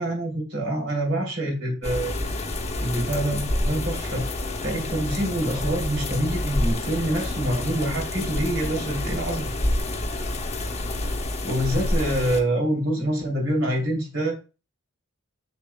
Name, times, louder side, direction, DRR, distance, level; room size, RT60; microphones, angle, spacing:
voice 1, 0.0-2.1 2.8-4.3 4.6-9.6 11.4-14.4, right 1 dB, 60° right, 0 dB, 3.1 m, -26 dB
sound 1, 1.8-12.4, left 1 dB, 30° left, 1.0 m, -28 dB
7.6 x 6.8 x 2.3 m, 0.31 s
head